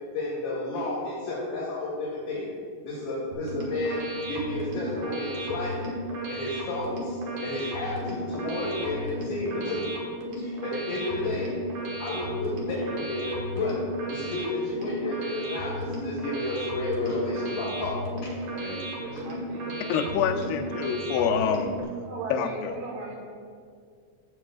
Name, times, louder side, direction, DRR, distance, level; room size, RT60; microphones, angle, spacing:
voice 1, 0.0-2.5 2.8-5.9 6.3-9.9 10.4-11.5 12.0-18.5, left 2 dB, 50° left, -9 dB, 3.0 m, -31 dB
sound 1, 3.3-21.8, right 1 dB, 60° right, 2.6 m, -34 dB
voice 2, 18.5-19.9 22.1-23.2, right 2 dB, 75° right, -4 dB, 4.4 m, -38 dB
voice 3, 19.9-21.8 22.3-22.7, left 7 dB, 90° left, 3 dB, 2.2 m, -26 dB
17.0 x 8.1 x 2.4 m, 2.1 s
omnidirectional pair, 5.4 m